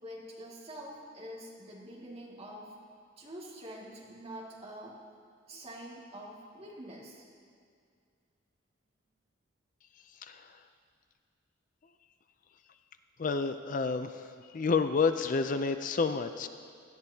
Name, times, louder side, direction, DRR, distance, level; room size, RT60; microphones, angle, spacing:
voice 1, 0.0-2.7 3.2-5.0 5.5-7.2, equal, 30° right, -5 dB, 2.1 m, -46 dB
voice 2, 13.2-14.3 14.5-16.5, left 4 dB, 40° left, 9 dB, 0.4 m, -29 dB
17.5 x 12.0 x 2.8 m, 2.2 s
head